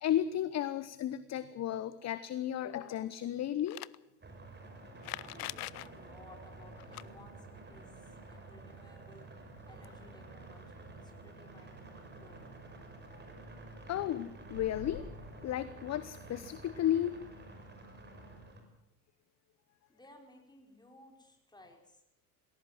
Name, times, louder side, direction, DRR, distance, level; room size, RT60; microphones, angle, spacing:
voice 1, 0.0-3.8 13.9-15.0 15.4-17.2, left 11 dB, 35° left, 15 dB, 1.0 m, -33 dB
sound 1, 3.6-4.0 5.0-5.9 6.8-7.0 9.6-9.7 9.8-9.9 11.1-11.2, left 20 dB, 70° left, 0.7 m, -42 dB
sound 2, 4.2-18.6, right 2 dB, 20° right, 5.8 m, -50 dB
voice 2, 5.2-7.9 8.3-9.3 9.6-12.6 19.9-22.1, left 1 dB, 10° left, 3 dB, 5.4 m, -59 dB
sound 3, 14.5-15.1, left 4 dB, 85° left, 3.0 m, -46 dB
20.0 x 17.5 x 7.8 m, 0.84 s
hypercardioid pair, 70°, 46 cm